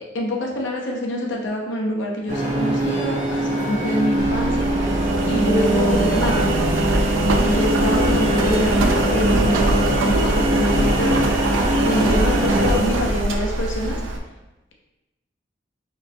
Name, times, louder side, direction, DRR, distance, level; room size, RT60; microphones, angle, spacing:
voice 1, 0.1-4.7 5.3-6.5 7.4-11.2 11.7-14.0, left 1 dB, 70° left, -1 dB, 0.7 m, -25 dB
sound 1, 2.3-12.7, right 1 dB, 40° right, 0.8 m, -24 dB
Engine, 4.2-14.2, right 2 dB, 90° right, 0.4 m, -21 dB
4.9 x 3.1 x 2.2 m, 1.0 s
head